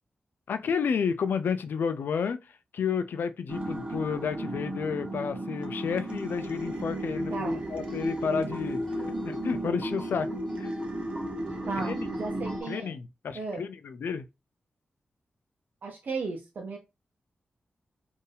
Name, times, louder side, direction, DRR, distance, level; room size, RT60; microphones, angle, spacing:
voice 1, 0.5-2.5 2.7-8.8 9.2-10.3 10.6-10.7 11.8-12.1 12.7-14.2, left 6 dB, 85° left, 0.4 m, -31 dB
sound 1, 3.5-12.6, right 1 dB, 30° right, 0.8 m, -34 dB
voice 2, 7.3-7.6 11.7-13.0 13.3-13.6 15.8-16.8, right 4 dB, 65° right, 0.7 m, -35 dB
sound 2, 7.5-12.8, equal, 15° left, 1.3 m, -47 dB
4.3 x 2.6 x 3.4 m
wide cardioid pair, 175°, 3 cm